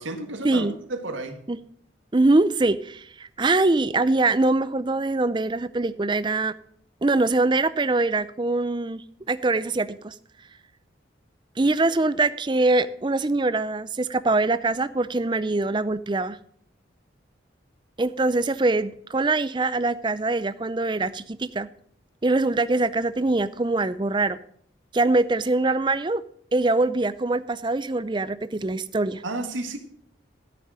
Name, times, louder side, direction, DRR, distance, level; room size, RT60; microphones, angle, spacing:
voice 1, 0.0-1.4 29.2-29.8, right 2 dB, 90° right, 5 dB, 1.8 m, -32 dB
voice 2, 2.1-6.5 7.0-10.1 11.6-16.4 18.0-21.7 22.2-24.4 24.9-26.2 26.5-29.2, right 2 dB, 25° right, 15 dB, 0.5 m, -23 dB
13.0 x 6.8 x 6.3 m, 0.64 s
head